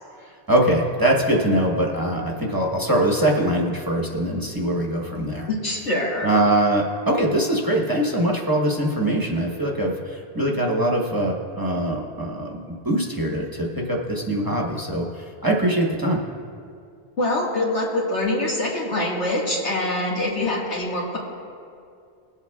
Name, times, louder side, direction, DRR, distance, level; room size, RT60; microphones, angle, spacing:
voice 1, 0.2-5.5 6.2-16.2, right 1 dB, 20° right, -2 dB, 1.0 m, -23 dB
voice 2, 5.5-6.3 17.2-21.2, left 1 dB, 80° left, -4 dB, 2.1 m, -24 dB
21.5 x 8.1 x 2.3 m, 2.4 s
omnidirectional pair, 1.2 m